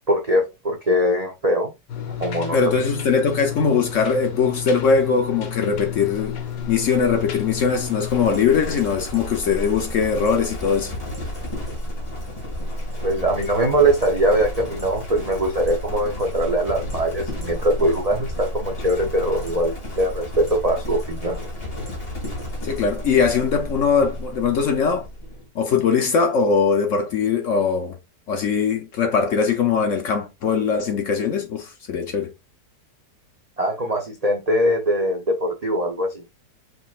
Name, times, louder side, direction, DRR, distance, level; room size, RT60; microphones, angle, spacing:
voice 1, 0.1-1.7 2.2-2.7 13.0-21.4 33.6-36.2, right 1 dB, 60° right, 0.4 m, -22 dB
sound 1, 1.9-8.3, left 9 dB, 80° left, 1.4 m, -31 dB
voice 2, 2.5-6.4 6.7-10.9 22.6-25.1 25.5-28.0 28.3-32.3, left 5 dB, 60° left, 0.9 m, -21 dB
Livestock farm animals working animals, 5.8-25.5, left 1 dB, 15° left, 1.8 m, -32 dB
4.8 x 3.1 x 2.4 m
omnidirectional pair, 1.8 m